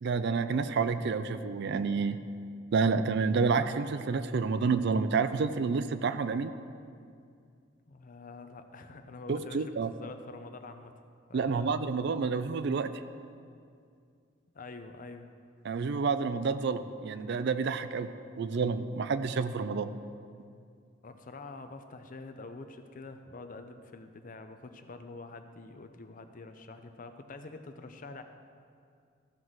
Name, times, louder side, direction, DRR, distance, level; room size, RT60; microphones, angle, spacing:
voice 1, 0.0-2.2 2.7-6.5 9.3-9.9 11.3-13.0 15.6-19.9, right 5 dB, 55° right, 12 dB, 0.4 m, -29 dB
voice 2, 7.9-10.9 11.3-11.7 14.5-15.3 21.0-28.2, left 3 dB, 40° left, 8 dB, 0.6 m, -46 dB
14.5 x 6.2 x 4.0 m, 2.3 s
head